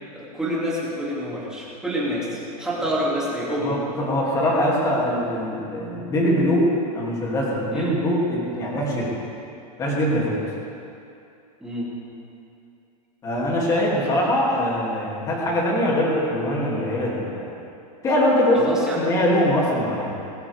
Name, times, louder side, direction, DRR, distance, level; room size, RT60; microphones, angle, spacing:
voice 1, 0.1-3.8 7.7-7.9 11.6-11.9 18.5-19.0, equal, 5° right, -7 dB, 2.8 m, -27 dB
voice 2, 3.6-9.1 9.8-10.4 13.2-17.4 18.0-18.6 18.9-20.1, equal, 15° left, -4 dB, 2.8 m, -22 dB
19.5 x 15.0 x 3.6 m, 2.6 s
supercardioid pair, 165°, 20 cm